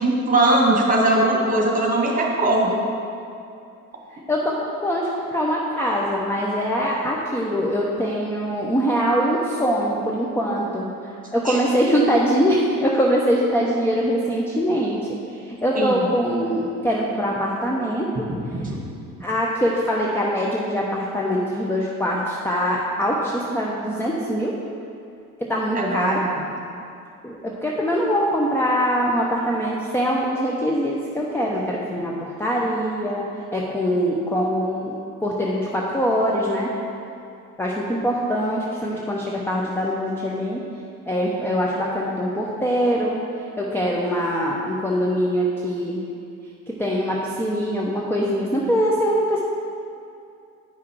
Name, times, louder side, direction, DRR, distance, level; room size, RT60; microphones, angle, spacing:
voice 1, 0.0-2.8 11.5-11.6 15.7-16.1 18.3-18.8 25.7-26.3, right 1 dB, 20° right, -1 dB, 1.8 m, -20 dB
voice 2, 4.3-15.0 15.4-18.1 19.2-24.5 25.4-26.2 27.2-33.2 33.5-36.7 37.6-40.6 41.1-43.2 43.6-46.0 46.7-49.4, equal, 5° left, -3 dB, 0.8 m, -23 dB
8.7 x 5.9 x 4.6 m, 2.5 s
figure-of-eight pair, 55°, 44 cm